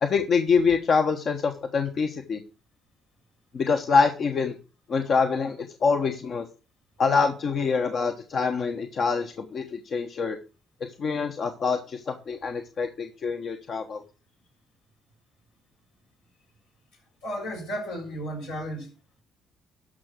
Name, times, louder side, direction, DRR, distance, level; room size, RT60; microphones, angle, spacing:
voice 1, 0.0-2.4 3.5-4.5 4.9-6.4 7.0-10.4 10.8-14.0, left 5 dB, 55° left, 1.2 m, -25 dB
voice 2, 17.2-18.9, equal, 90° left, 5.5 m, -33 dB
13.0 x 5.7 x 6.2 m
hypercardioid pair, 55°, 0 cm